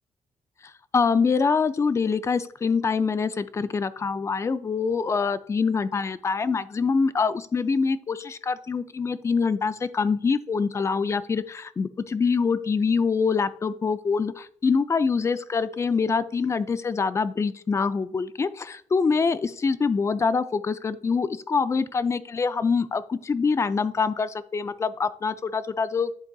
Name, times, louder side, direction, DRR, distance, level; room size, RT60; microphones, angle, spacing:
voice 1, 0.9-26.1, left 5 dB, 25° left, 13 dB, 0.3 m, -25 dB
11.0 x 3.8 x 2.3 m, 0.65 s
wide cardioid pair, 150°, 13 cm